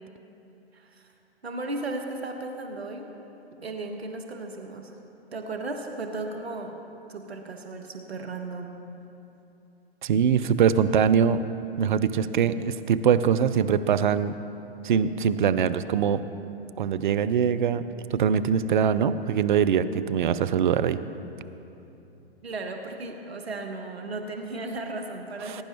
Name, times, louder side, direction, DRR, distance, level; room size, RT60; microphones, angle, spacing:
voice 1, 0.7-1.1 1.4-3.1 3.6-4.9 5.3-6.7 7.1-8.8 22.4-25.6, right 2 dB, 70° right, 3 dB, 1.3 m, -35 dB
voice 2, 10.0-11.4 11.8-14.3 14.8-16.2 16.8-17.8 18.1-21.0 25.5-25.6, right 7 dB, 50° right, 12 dB, 0.5 m, -23 dB
21.0 x 10.0 x 3.0 m, 2.9 s
figure-of-eight pair, 115°, 32 cm